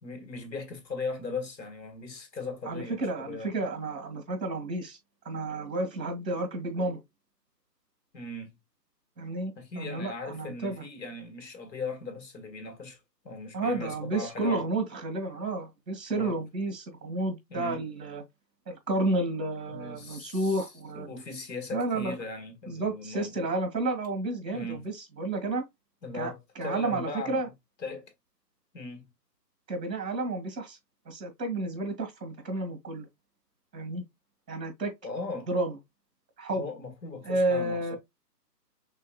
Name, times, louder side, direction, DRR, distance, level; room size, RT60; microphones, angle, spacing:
voice 1, 0.0-3.5 8.1-8.5 9.6-13.0 13.2-14.6 16.2-16.4 17.5-17.8 19.7-20.7 20.9-23.5 24.5-24.8 26.0-27.5 27.8-28.1 28.7-29.1 35.0-35.5 36.6-38.0, left 3 dB, 85° left, 1.9 m, -38 dB
voice 2, 2.7-5.0 5.3-7.0 9.2-10.8 13.5-18.2 18.7-21.1 21.7-22.1 22.7-25.6 26.1-27.5 29.7-30.8 31.1-33.1 33.7-34.0 34.5-34.9 35.5-35.8 36.4-36.6 37.2-38.0, right 2 dB, 75° right, 2.1 m, -31 dB
5.5 x 3.7 x 2.3 m
hypercardioid pair, 170°, 50 cm